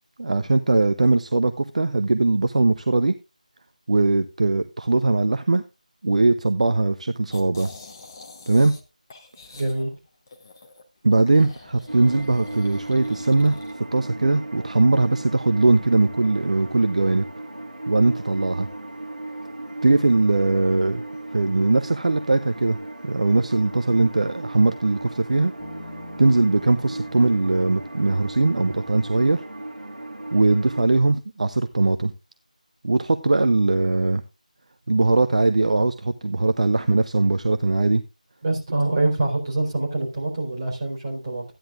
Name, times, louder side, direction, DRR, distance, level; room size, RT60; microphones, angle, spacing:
voice 1, 0.2-3.1 3.9-5.6 6.0-7.7 8.5-8.7 11.0-13.6 13.9-17.2 17.9-18.7 19.8-21.0 21.3-22.8 23.0-25.5 26.2-29.4 30.3-32.1 32.8-34.2 34.9-38.0, right 2 dB, 55° right, 10 dB, 0.7 m, -20 dB
sound 1, 7.3-8.8 9.1-10.8 11.2-13.7, left 3 dB, 25° left, 1.2 m, -45 dB
voice 2, 9.5-9.9 38.4-41.4, right 2 dB, 35° right, -3 dB, 4.3 m, -25 dB
sound 2, 11.9-30.8, right 2 dB, 85° right, 1.8 m, -36 dB
Bass guitar, 25.6-29.4, left 1 dB, ahead, 4.8 m, -44 dB
14.0 x 10.5 x 2.5 m, 0.26 s
figure-of-eight pair, 170°, 4 cm